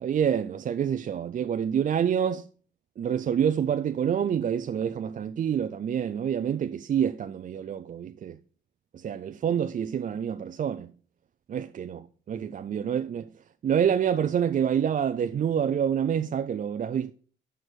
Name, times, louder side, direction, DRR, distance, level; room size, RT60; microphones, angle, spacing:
voice 1, 0.0-2.5 3.0-8.4 8.9-10.9 11.5-13.3 13.6-17.1, right 8 dB, 40° right, 0.4 m, -27 dB
6.2 x 4.5 x 6.6 m
cardioid pair, 90°, 20 cm